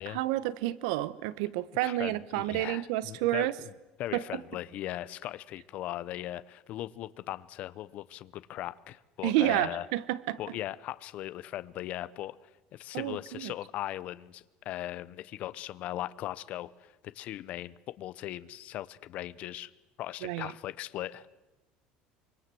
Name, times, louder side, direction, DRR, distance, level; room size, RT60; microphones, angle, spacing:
voice 1, 0.1-3.5 4.1-4.4 9.2-10.4 12.9-13.5 20.2-20.5, right 15 dB, 80° right, 18 dB, 1.0 m, -30 dB
voice 2, 1.8-3.7 4.0-9.9 10.4-19.7 20.0-21.3, left 14 dB, 45° left, 16 dB, 0.9 m, -39 dB
25.0 x 24.5 x 7.8 m, 1.0 s
cardioid pair, 170°, 3 cm